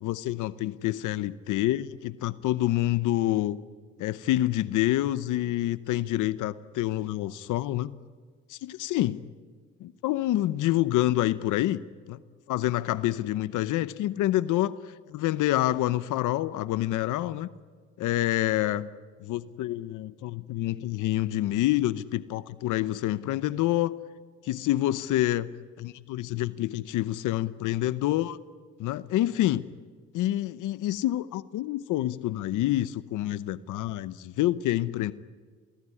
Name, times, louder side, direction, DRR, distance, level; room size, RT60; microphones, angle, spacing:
voice 1, 0.0-3.6 4.0-7.9 8.5-9.2 9.8-11.8 12.1-12.2 12.5-17.5 18.0-18.9 19.2-24.0 24.4-25.5 25.8-28.4 28.8-29.7 30.1-35.1, left 14 dB, 90° left, 15 dB, 0.8 m, -27 dB
28.5 x 20.0 x 9.9 m, 1.6 s
cardioid pair, 90°, 30 cm